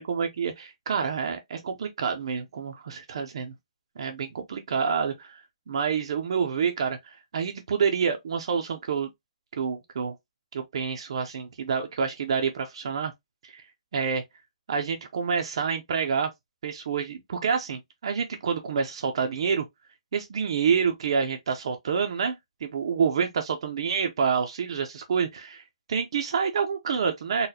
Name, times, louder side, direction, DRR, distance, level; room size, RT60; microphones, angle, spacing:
voice 1, 0.1-3.5 4.0-5.3 5.7-9.1 9.6-10.2 10.5-13.1 13.4-13.6 13.9-14.2 14.7-16.3 16.6-19.6 20.1-22.4 22.6-25.6 25.9-27.5, right 6 dB, 50° right, 0.5 m, -28 dB
3.9 x 2.2 x 2.7 m
hypercardioid pair, 170°, 4 cm